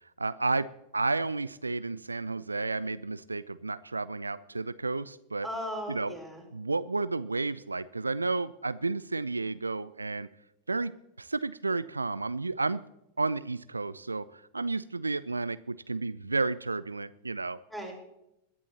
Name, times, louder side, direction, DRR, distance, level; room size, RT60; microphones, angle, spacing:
voice 1, 0.2-0.7 0.9-5.5 5.9-6.1 6.5-10.3 10.7-12.8 13.2-14.3 14.5-17.6, right 3 dB, 80° right, 17 dB, 0.3 m, -31 dB
voice 2, 5.4-6.4 17.7-17.9, equal, 5° left, -1 dB, 4.4 m, -37 dB
21.5 x 11.0 x 2.9 m, 0.85 s
figure-of-eight pair, 90°, 0 cm